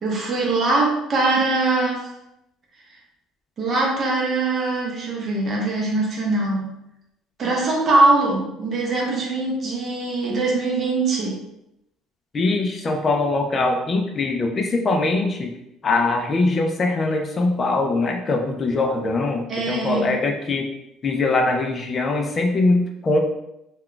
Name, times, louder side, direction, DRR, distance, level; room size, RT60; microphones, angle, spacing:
voice 1, 0.0-2.1 3.6-6.7 7.4-11.4 19.5-20.2, right 2 dB, 35° right, -3 dB, 0.7 m, -22 dB
voice 2, 12.3-15.5 15.8-20.7 21.0-23.2, left 3 dB, 25° left, 2 dB, 0.4 m, -22 dB
2.3 x 2.2 x 3.7 m, 0.84 s
cardioid pair, 155°, 0 cm